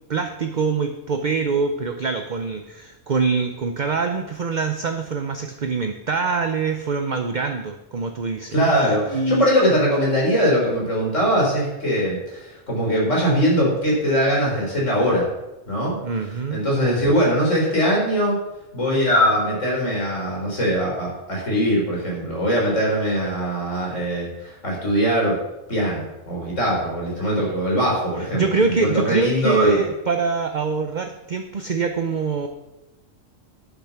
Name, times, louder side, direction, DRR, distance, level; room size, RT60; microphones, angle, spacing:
voice 1, 0.1-9.4 16.0-16.6 28.2-32.5, right 4 dB, 45° right, 6 dB, 0.7 m, -24 dB
voice 2, 8.5-15.2 15.7-16.0 16.5-18.4 18.7-25.4 25.7-29.8, equal, 75° left, -3 dB, 4.3 m, -21 dB
11.0 x 7.0 x 5.9 m, 0.99 s
omnidirectional pair, 1.3 m